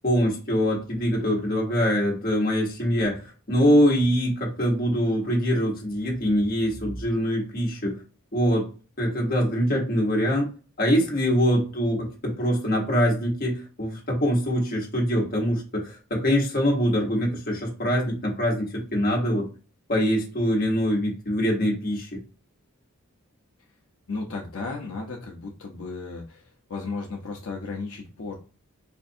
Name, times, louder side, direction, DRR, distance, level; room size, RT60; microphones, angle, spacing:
voice 1, 0.0-8.0 8.3-8.7 9.0-10.4 10.8-19.5 19.9-22.2, equal, 40° left, -1 dB, 1.1 m, -24 dB
voice 2, 24.1-28.4, left 3 dB, 70° left, 0 dB, 0.6 m, -34 dB
4.4 x 2.5 x 2.6 m, 0.36 s
head